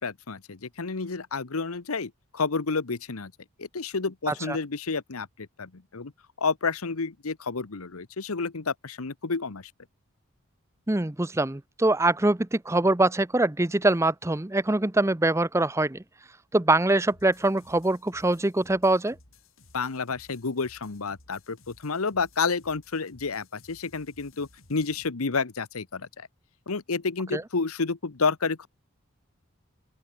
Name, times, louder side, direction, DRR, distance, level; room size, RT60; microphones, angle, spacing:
voice 1, 0.0-3.3 3.6-6.1 6.4-9.7 19.7-26.3 26.7-28.7, left 4 dB, 90° left, 1.1 m, -30 dB
voice 2, 10.9-16.0 16.5-19.2 27.3-27.4, right 2 dB, 15° right, 0.6 m, -23 dB
sound 1, 17.1-25.1, left 2 dB, 70° left, 5.6 m, -57 dB
open air
head